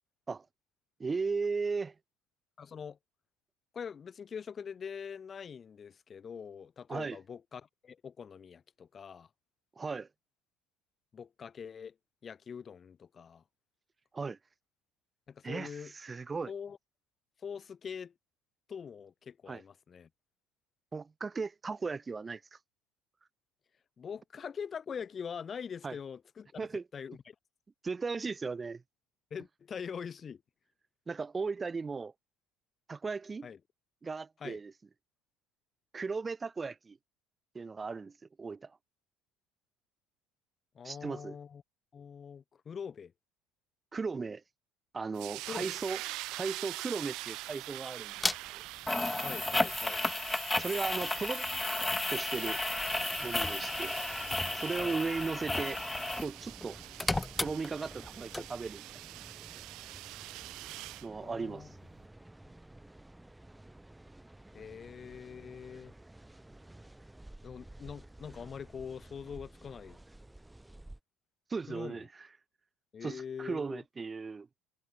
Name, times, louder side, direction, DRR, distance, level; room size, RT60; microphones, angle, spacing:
voice 1, 1.0-1.9 6.9-7.2 9.8-10.1 14.1-14.4 15.4-16.5 19.5-19.6 20.9-22.4 25.8-26.0 26.6-26.8 27.8-28.8 31.1-32.1 32.9-33.5 34.0-34.7 35.9-37.0 37.5-38.7 40.8-41.4 43.9-44.4 44.9-46.0 46.3-48.2 48.5-48.6 50.6-51.5 52.1-52.6 53.2-54.0 54.5-55.8 56.2-56.8 57.4-58.9 61.0-61.7 71.5-72.1 73.0-74.5, right 4 dB, 25° right, 1.8 m, -36 dB
voice 2, 2.6-3.0 3.7-9.3 11.1-11.9 12.2-13.4 15.3-15.9 16.5-16.8 17.4-18.1 18.7-20.1 24.0-26.7 26.9-27.3 29.3-30.4 33.4-33.6 34.4-34.6 40.7-41.6 41.9-43.1 45.5-45.7 49.2-50.0 54.8-55.0 61.2-61.7 62.4-62.5 64.5-65.9 67.4-70.0 71.7-72.1 72.9-73.8, left 7 dB, 35° left, 2.7 m, -43 dB
sound 1, 45.1-61.1, right 20 dB, 65° right, 0.7 m, -45 dB
sound 2, 48.2-48.3 48.9-56.3 56.6-58.1 58.3-58.4, left 2 dB, 10° left, 1.5 m, -33 dB
sound 3, 52.8-71.0, right 1 dB, 10° right, 3.0 m, -53 dB
hypercardioid pair, 70°, 0 cm